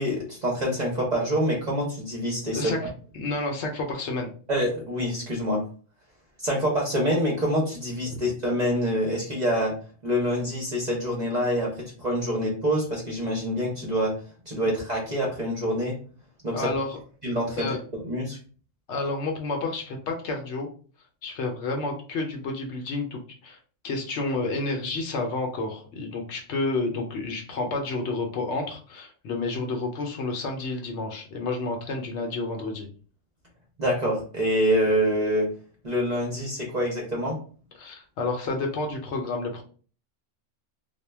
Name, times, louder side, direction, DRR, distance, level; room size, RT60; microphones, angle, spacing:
voice 1, 0.0-2.6 4.5-5.6 6.4-9.7 10.0-14.1 14.5-15.9 16.4-16.7 17.2-17.7 18.0-18.4 33.8-35.5 35.8-37.4, equal, 45° right, -2 dB, 0.6 m, -26 dB
voice 2, 2.5-2.9 3.1-4.3 8.1-8.2 16.5-17.0 17.6-17.8 18.9-20.7 21.2-23.6 23.8-32.9 37.8-39.6, left 3 dB, 65° left, 2 dB, 0.8 m, -30 dB
2.1 x 2.1 x 3.2 m, 0.42 s
omnidirectional pair, 1.3 m